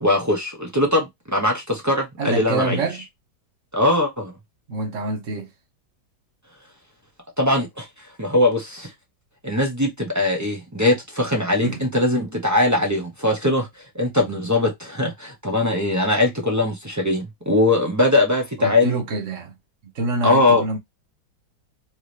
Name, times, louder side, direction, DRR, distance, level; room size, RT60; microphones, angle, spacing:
voice 1, 0.0-2.8 3.7-4.3 7.4-7.9 8.2-8.9 9.4-13.7 13.9-19.0 20.2-20.6, left 2 dB, 25° right, 0.3 m, -21 dB
voice 2, 2.2-3.0 4.7-5.5 11.6-11.8 18.6-19.5 19.9-20.8, right 3 dB, 45° right, 1.3 m, -26 dB
4.7 x 3.2 x 3.3 m
omnidirectional pair, 2.2 m